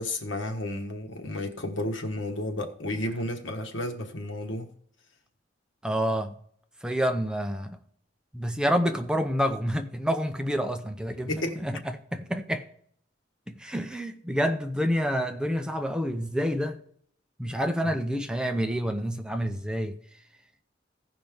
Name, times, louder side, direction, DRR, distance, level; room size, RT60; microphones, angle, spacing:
voice 1, 0.0-4.7 11.3-11.6 17.8-17.9, left 1 dB, 85° left, 1.3 m, -32 dB
voice 2, 5.8-6.4 6.8-7.8 8.3-12.7 13.5-16.8 17.4-20.0, equal, 5° right, 0.5 m, -28 dB
15.5 x 5.3 x 3.6 m
head